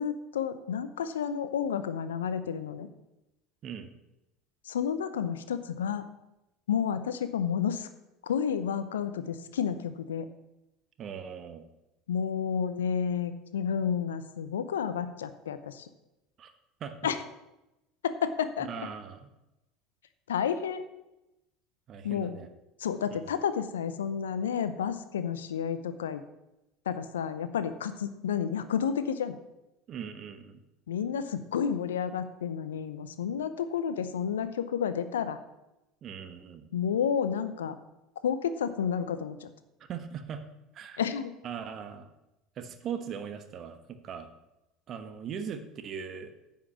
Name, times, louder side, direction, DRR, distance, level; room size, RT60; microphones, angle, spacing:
voice 1, 0.0-2.9 4.7-6.1 6.7-7.9 8.2-10.3 12.1-15.9 17.0-17.2 18.0-18.7 20.3-20.8 22.0-22.4 22.8-26.2 26.9-29.4 30.9-35.4 36.7-37.8 38.2-39.5 41.0-41.3, left 7 dB, 80° left, 11 dB, 0.7 m, -31 dB
voice 2, 11.0-11.6 16.4-16.5 16.8-16.9 18.6-19.2 21.9-22.5 23.1-23.3 29.9-30.6 36.0-36.7 39.9-40.4 40.7-41.0 41.4-42.1 42.6-44.3 44.9-46.3, right 7 dB, 45° right, 8 dB, 1.3 m, -39 dB
9.7 x 5.7 x 7.2 m, 0.93 s
hypercardioid pair, 70°, 0 cm